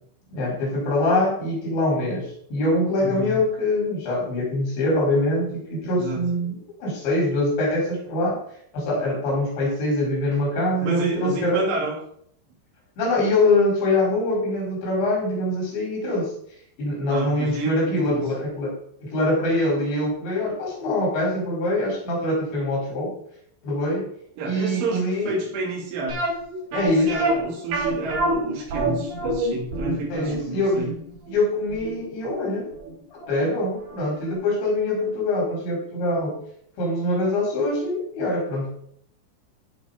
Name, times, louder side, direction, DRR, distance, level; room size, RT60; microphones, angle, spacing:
voice 1, 0.3-8.4 8.7-11.6 13.0-16.3 16.8-18.7 19.0-23.1 23.6-24.1 24.5-25.3 26.7-27.2 30.1-30.9 31.3-32.7 33.3-36.4 36.8-38.7, left 1 dB, 70° left, -3 dB, 6.6 m, -24 dB
voice 2, 3.0-3.4 6.0-6.3 10.8-12.0 17.1-18.3 24.4-26.2 26.7-30.9, right 2 dB, 85° right, -1 dB, 5.1 m, -30 dB
sound 1, 26.1-33.0 33.2-33.3 33.9-34.0 34.3-34.4, right 2 dB, 70° right, 6.2 m, -27 dB
14.5 x 5.7 x 5.1 m, 0.67 s
omnidirectional pair, 5.4 m